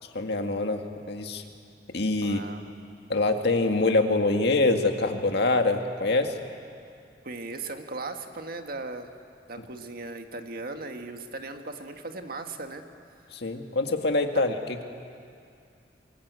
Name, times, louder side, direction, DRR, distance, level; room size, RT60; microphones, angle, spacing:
voice 1, 0.1-1.4 1.9-2.4 3.1-6.3 13.3-14.8, left 2 dB, 65° left, 4 dB, 1.9 m, -25 dB
voice 2, 2.2-2.6 7.2-9.1 9.5-12.8, right 3 dB, 55° right, 5 dB, 1.7 m, -37 dB
28.5 x 22.0 x 8.2 m, 2.4 s
head